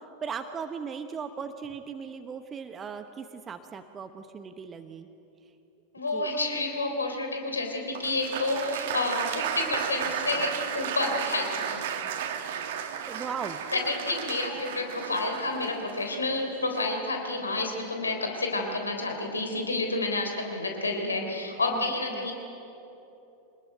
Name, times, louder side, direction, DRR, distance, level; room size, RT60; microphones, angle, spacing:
voice 1, 0.0-5.1 6.1-6.3 13.1-13.6 21.7-21.8 22.1-22.3, right 6 dB, 20° right, 8 dB, 1.1 m, -38 dB
voice 2, 5.9-11.9 13.7-22.3, left 2 dB, 75° left, 3 dB, 3.6 m, -30 dB
Applause, 8.0-16.9, right 8 dB, 55° right, 2.0 m, -34 dB
25.5 x 20.0 x 9.2 m, 3.0 s
figure-of-eight pair, 90°, 0 cm